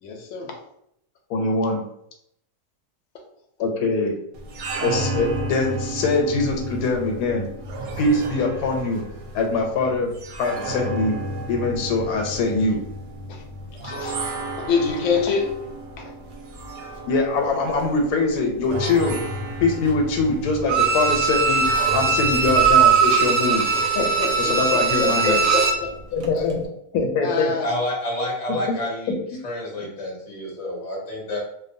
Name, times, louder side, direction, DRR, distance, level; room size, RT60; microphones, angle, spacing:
voice 1, 0.0-0.5 13.3-13.4 13.8-14.1 14.6-15.5 16.0-16.1 23.7-25.9 26.3-26.4 27.2-27.7, left 4 dB, 65° left, 2 dB, 0.8 m, -26 dB
voice 2, 1.3-1.9 3.6-4.1 4.8-7.5 8.0-9.0 9.3-10.1 10.4-11.1 11.5-12.8 17.1-19.2 19.6-23.7 24.4-25.4 26.1-26.6 26.9-27.5 28.7-28.8, left 3 dB, 90° left, 2 dB, 1.1 m, -23 dB
sound 1, 4.3-22.9, right 1 dB, 70° right, 0.9 m, -32 dB
Bowed string instrument, 20.7-25.9 26.2-26.3, right 6 dB, 85° right, 1.1 m, -20 dB
voice 3, 27.6-29.1 29.4-31.4, left 1 dB, 35° left, -4 dB, 0.6 m, -28 dB
2.6 x 2.1 x 2.6 m, 0.74 s
omnidirectional pair, 1.6 m